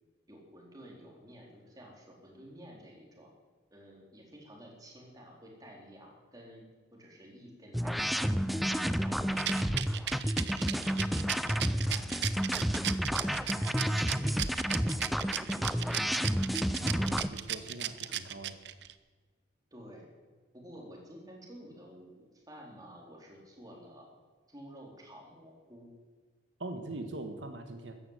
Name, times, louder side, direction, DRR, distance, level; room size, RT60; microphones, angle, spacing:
voice 1, 0.3-3.3 3.7-9.7 10.4-11.0 11.4-16.1 19.7-20.1 20.5-24.1 24.5-25.9, equal, 20° right, -1 dB, 4.0 m, -52 dB
sound 1, 7.7-17.3, equal, ahead, 0.5 m, -30 dB
Rattle, 9.4-18.9, right 12 dB, 65° right, 0.7 m, -35 dB
voice 2, 16.8-18.6 26.6-27.9, right 2 dB, 80° right, 5 dB, 1.6 m, -42 dB
14.0 x 11.0 x 8.2 m, 1.4 s
head